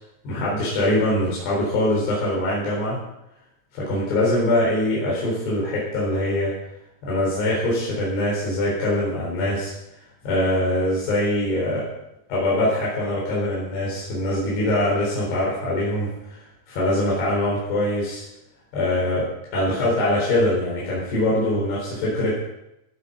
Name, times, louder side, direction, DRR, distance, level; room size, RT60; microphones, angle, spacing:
voice 1, 0.2-3.0 3.7-6.5 7.0-9.7 10.2-11.9 12.3-18.2 18.7-22.4, left 1 dB, 80° left, -6 dB, 6.0 m, -23 dB
17.5 x 9.1 x 5.5 m, 0.86 s
omnidirectional pair, 4.6 m